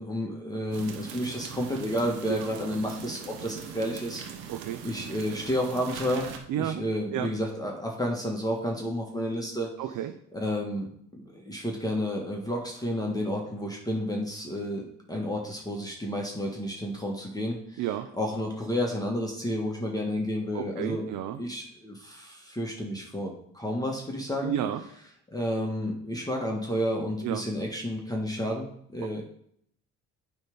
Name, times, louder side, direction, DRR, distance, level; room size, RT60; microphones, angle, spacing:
voice 1, 0.0-4.2 4.8-6.3 6.6-9.7 10.3-17.8 18.2-21.0 21.4-24.5 25.3-28.7 28.9-29.2, equal, 10° left, 0 dB, 1.6 m, -31 dB
sound 1, 0.7-6.4, right 7 dB, 80° right, 1.0 m, -41 dB
voice 2, 4.5-4.8 6.5-6.8 7.1-7.3 9.8-10.2 17.8-18.1 20.5-21.4 24.4-24.8 27.2-27.4, right 11 dB, 65° right, 9 dB, 0.6 m, -31 dB
8.9 x 3.5 x 5.4 m, 0.69 s
hypercardioid pair, 60°, 34 cm